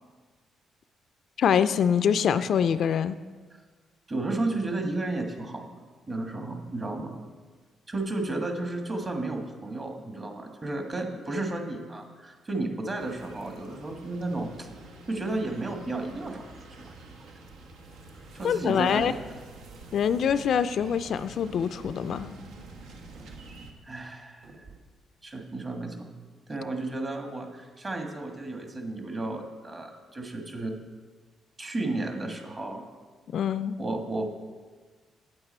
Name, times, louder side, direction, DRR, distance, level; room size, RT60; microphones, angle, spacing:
voice 1, 1.4-3.2 18.4-19.1 19.9-22.3 33.3-33.8, left 8 dB, 65° left, 12 dB, 0.3 m, -24 dB
voice 2, 4.1-5.6 6.1-7.2 7.9-14.7 15.1-16.5 16.8-16.9 18.3-19.1 23.8-24.5 25.2-26.1 26.5-30.8 31.6-32.8 33.8-34.3, right 2 dB, 30° right, 3 dB, 1.4 m, -33 dB
sound 1, 13.0-23.7, right 2 dB, 90° right, 1.0 m, -47 dB
sound 2, 18.7-19.3 20.0-20.5 21.8-22.0 23.1-23.5 24.4-24.8, right 3 dB, 60° right, 1.5 m, -50 dB
8.8 x 7.9 x 4.4 m, 1.4 s
cardioid pair, 90°, 0 cm